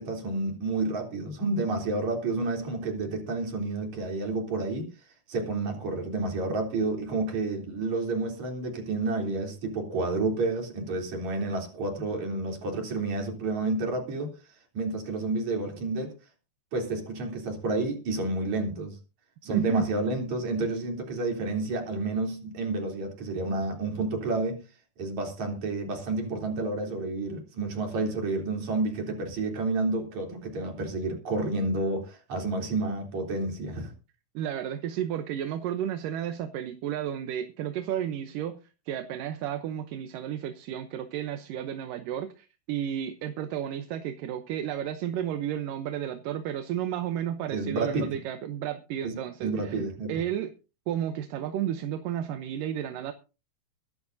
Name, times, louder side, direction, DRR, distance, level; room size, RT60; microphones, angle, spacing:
voice 1, 0.0-4.9 5.3-14.3 14.7-16.1 16.7-19.0 19.4-24.6 25.0-33.9 47.5-48.1 49.0-50.1, right 3 dB, 50° right, 4.6 m, -30 dB
voice 2, 19.5-19.9 34.3-49.8 50.1-50.5 50.9-53.1, right 10 dB, 70° right, 2.3 m, -32 dB
22.5 x 11.0 x 2.7 m
omnidirectional pair, 4.4 m